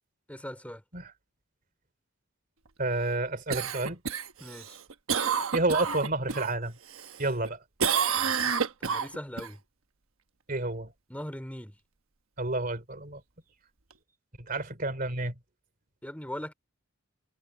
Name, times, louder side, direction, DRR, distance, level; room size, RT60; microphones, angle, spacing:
voice 1, 0.3-0.8 4.4-4.8 8.8-9.6 11.1-11.8 16.0-16.5, equal, 5° left, 2.7 m, -40 dB
voice 2, 2.8-4.0 5.5-6.7 7.2-7.6 10.5-10.9 12.4-13.2 14.5-15.4, right 2 dB, 40° right, 3.3 m, -30 dB
Cough, 3.5-6.5 6.9-7.5 7.8-9.5 13.9-14.0, right 7 dB, 75° right, 1.2 m, -29 dB
head